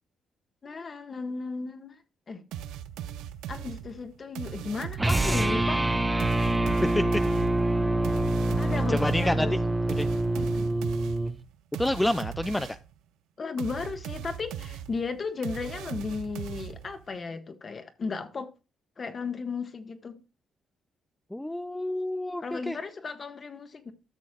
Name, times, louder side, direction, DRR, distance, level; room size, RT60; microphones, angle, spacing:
voice 1, 0.6-2.0 2.3-2.4 3.5-5.9 8.6-9.5 10.1-10.7 13.4-18.5 19.0-20.2 22.4-23.9, left 4 dB, 40° left, 1.5 m, -35 dB
sound 1, 2.5-5.6 6.2-12.9 13.6-17.1, right 10 dB, 90° right, 0.5 m, -39 dB
sound 2, 5.0-11.4, right 2 dB, 10° right, 0.8 m, -26 dB
voice 2, 8.9-9.5 10.0-10.1 11.8-12.8 21.3-22.8, left 1 dB, 10° left, 0.4 m, -28 dB
13.5 x 6.4 x 2.4 m
cardioid pair, 90°, 0 cm